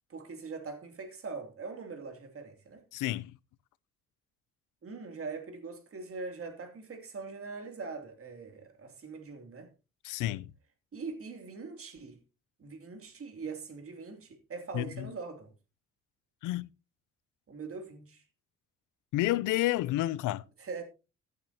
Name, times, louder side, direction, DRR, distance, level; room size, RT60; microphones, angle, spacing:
voice 1, 0.1-2.8 4.8-9.7 10.9-12.2 12.6-15.5 17.5-18.2 20.6-20.8, right 4 dB, 50° right, 2.8 m, -42 dB
voice 2, 2.9-3.3 10.0-10.5 14.7-15.1 16.4-16.7 19.1-20.4, left 16 dB, 90° left, 0.5 m, -30 dB
14.5 x 9.3 x 2.9 m
cardioid pair, 90°, 30 cm